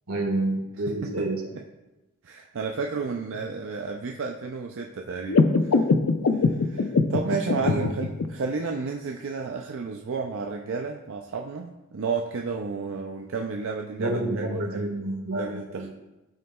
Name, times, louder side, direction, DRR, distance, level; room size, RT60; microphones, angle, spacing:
voice 1, 0.1-1.4 7.6-8.1 14.0-15.5 15.7-15.8, right 1 dB, 85° right, 2 dB, 1.6 m, -28 dB
voice 2, 0.8-1.3 1.5-1.6 2.2-5.9 6.3-14.9 15.3-15.9, right 4 dB, 65° right, 2 dB, 0.5 m, -32 dB
sound 1, 5.3-8.3, left 4 dB, 85° left, 0.5 m, -22 dB
13.0 x 6.4 x 2.3 m, 1.0 s
head